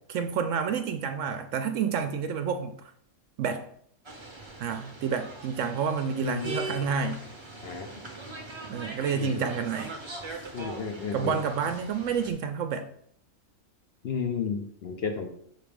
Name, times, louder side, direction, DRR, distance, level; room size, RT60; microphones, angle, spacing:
voice 1, 0.1-2.7 3.4-3.6 4.6-7.3 8.7-10.0 11.1-12.9, right 6 dB, 70° right, 8 dB, 0.8 m, -29 dB
sound 1, 4.1-12.3, right 2 dB, 30° right, 0.5 m, -41 dB
voice 2, 6.2-6.5 7.6-7.9 9.1-9.5 10.5-11.4 14.0-15.3, left 6 dB, 55° left, 3 dB, 0.7 m, -32 dB
6.4 x 3.3 x 5.0 m, 0.66 s
omnidirectional pair, 1.5 m